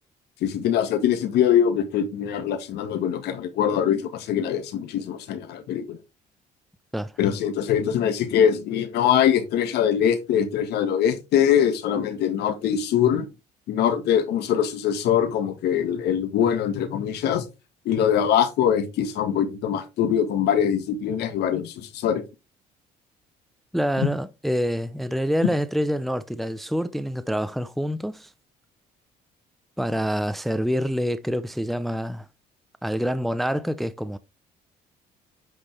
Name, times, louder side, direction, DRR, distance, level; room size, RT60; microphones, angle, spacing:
voice 1, 0.4-6.0 7.2-13.3 13.7-17.5 17.9-22.2 24.0-24.1, left 9 dB, 75° left, 1.6 m, -23 dB
voice 2, 23.7-28.3 29.8-32.3 32.8-34.2, equal, ahead, 0.5 m, -26 dB
9.6 x 5.4 x 3.3 m
cardioid pair, 110°, 17 cm